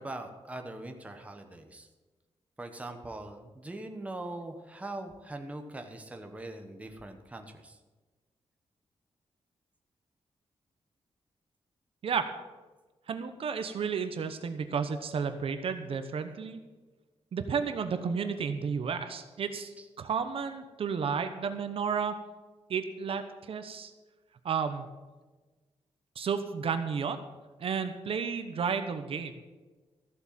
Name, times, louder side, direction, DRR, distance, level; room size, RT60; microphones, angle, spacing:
voice 1, 0.0-1.9 2.6-7.8 19.8-19.9, right 2 dB, 15° right, 5 dB, 1.1 m, -42 dB
voice 2, 13.1-16.6 17.3-22.2 22.7-23.9 24.4-24.9 26.2-27.2 27.6-29.4, right 6 dB, 60° right, 8 dB, 1.0 m, -32 dB
14.5 x 7.9 x 7.5 m, 1.2 s
wide cardioid pair, 175°, 11 cm